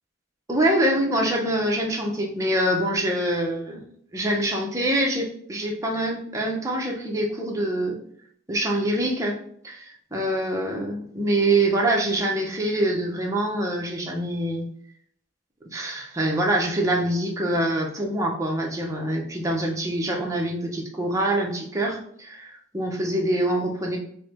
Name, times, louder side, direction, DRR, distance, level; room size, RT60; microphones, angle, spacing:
voice 1, 0.5-3.8 4.1-8.0 8.5-9.4 9.6-14.7 15.7-24.0, right 1 dB, 15° right, -1 dB, 0.7 m, -25 dB
4.4 x 2.1 x 3.5 m, 0.64 s
head